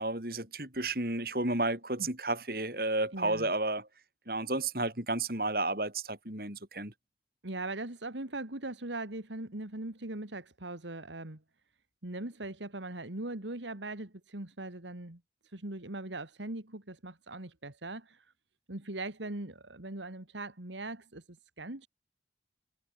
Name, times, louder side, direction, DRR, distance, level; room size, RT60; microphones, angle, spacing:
voice 1, 0.0-3.9 4.3-6.9, right 2 dB, 55° right, 6.4 m, -32 dB
voice 2, 3.1-3.5 7.4-11.4 12.0-15.2 15.5-18.3 18.7-21.9, right 2 dB, 90° right, 2.6 m, -40 dB
head